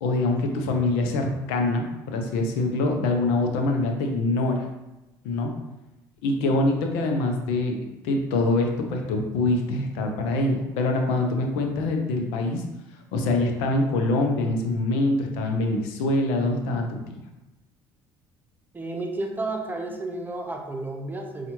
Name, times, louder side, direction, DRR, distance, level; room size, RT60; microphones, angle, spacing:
voice 1, 0.0-4.6 5.2-5.5 6.2-7.8 8.0-12.6 13.1-17.1, left 2 dB, 85° left, 3 dB, 0.6 m, -24 dB
voice 2, 18.7-21.5, right 2 dB, 20° right, 2 dB, 0.8 m, -32 dB
5.4 x 2.4 x 3.0 m, 1.0 s
supercardioid pair, 75°, 10 cm